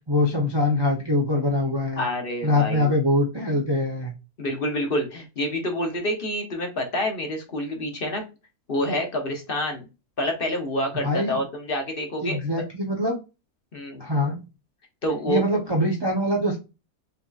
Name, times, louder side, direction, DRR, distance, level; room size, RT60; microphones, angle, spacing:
voice 1, 0.1-2.1 2.4-4.1 11.0-11.4 12.2-13.1 14.0-14.4 15.3-16.6, left 1 dB, 40° right, -1 dB, 0.3 m, -23 dB
voice 2, 2.0-2.9 4.4-8.2 8.7-9.9 10.2-12.4 13.7-14.0 15.0-15.4, left 1 dB, 45° left, 3 dB, 0.9 m, -27 dB
5.4 x 2.9 x 2.3 m, 0.28 s
omnidirectional pair, 1.6 m